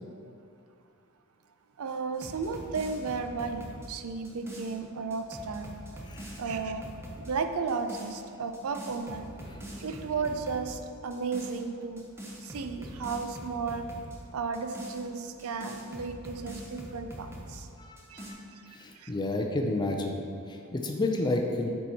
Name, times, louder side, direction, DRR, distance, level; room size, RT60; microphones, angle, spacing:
voice 1, 1.8-5.7 6.4-6.8 7.2-9.3 9.8-12.1 12.4-13.9 14.3-17.7 18.1-18.2 19.0-19.1, right 4 dB, 85° right, 7 dB, 0.5 m, -34 dB
sound 1, 2.1-4.7 5.1-7.3 7.7-8.2 8.5-10.7 11.1-11.6 12.0-14.2 14.5-17.6 18.0-18.3, equal, 10° right, 0.9 m, -43 dB
voice 2, 6.1-6.4 9.5-9.8 17.8-18.4 18.7-21.7, left 2 dB, 20° left, 2 dB, 0.4 m, -31 dB
7.1 x 4.6 x 4.1 m, 2.5 s
head